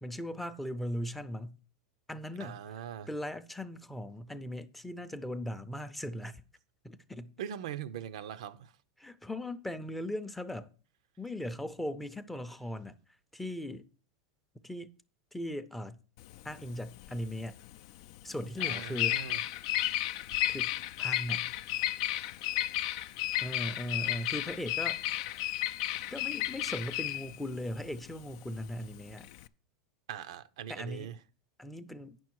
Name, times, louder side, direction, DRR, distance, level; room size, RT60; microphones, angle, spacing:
voice 1, 0.0-1.6 2.1-2.6 3.1-6.4 6.8-7.3 9.0-10.7 11.2-13.0 13.3-13.9 14.6-14.9 15.3-16.0 16.4-17.6 18.2-19.2 20.5-20.7 21.0-21.5 23.4-25.3 26.1-29.3 30.7-31.1 31.6-32.2, left 1 dB, 5° left, 0.5 m, -38 dB
voice 2, 2.4-3.1 7.4-8.7 18.6-19.4 30.1-31.1, right 9 dB, 80° right, 0.5 m, -41 dB
Bird vocalization bird call bird song, 16.2-29.5, left 14 dB, 65° left, 0.4 m, -33 dB
8.9 x 6.1 x 4.6 m
supercardioid pair, 125°, 3 cm